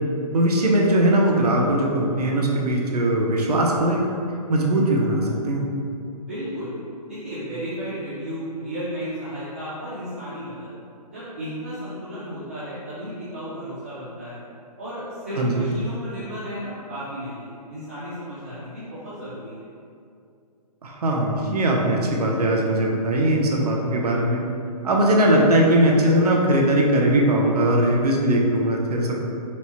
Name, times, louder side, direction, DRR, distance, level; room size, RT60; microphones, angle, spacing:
voice 1, 0.3-4.1 4.5-5.7 15.4-15.7 20.8-24.4 24.8-29.3, right 1 dB, 70° right, 0 dB, 0.8 m, -20 dB
voice 2, 6.1-6.7 7.1-10.7 11.1-14.4 14.8-19.6, equal, 20° right, -11 dB, 0.4 m, -33 dB
4.4 x 2.1 x 4.2 m, 2.5 s
hypercardioid pair, 175°, 20 cm